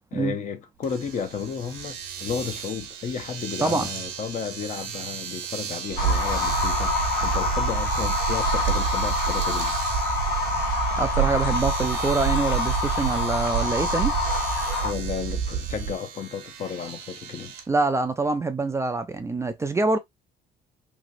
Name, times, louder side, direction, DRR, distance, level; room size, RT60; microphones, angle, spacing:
voice 1, 0.0-9.7 13.7-13.9 14.8-17.5, left 7 dB, 45° left, 0.7 m, -33 dB
Domestic sounds home sounds, 0.8-17.7, right 8 dB, 90° right, 0.9 m, -37 dB
sound 1, 5.9-15.9, right 8 dB, 70° right, 0.5 m, -28 dB
sound 2, 6.0-14.9, left 4 dB, 75° left, 1.6 m, -27 dB
voice 2, 11.0-14.1 17.7-20.0, right 3 dB, 15° right, 0.4 m, -25 dB
3.0 x 2.9 x 2.5 m
cardioid pair, 110°, 17 cm